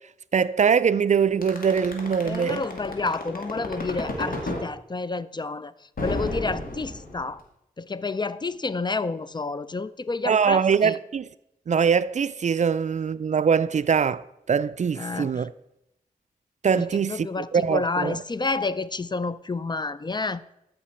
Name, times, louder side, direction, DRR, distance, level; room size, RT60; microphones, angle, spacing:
voice 1, 0.3-2.6 10.3-11.3 11.7-15.5 16.6-18.2, right 6 dB, 50° right, 0.4 m, -23 dB
sound 1, 1.4-4.6 6.0-7.4, left 2 dB, 70° left, 2.0 m, -31 dB
voice 2, 2.2-5.7 6.0-7.4 7.8-11.0 15.0-15.5 16.7-20.4, left 3 dB, 30° left, 0.4 m, -29 dB
13.5 x 5.8 x 4.3 m
cardioid pair, 55°, 15 cm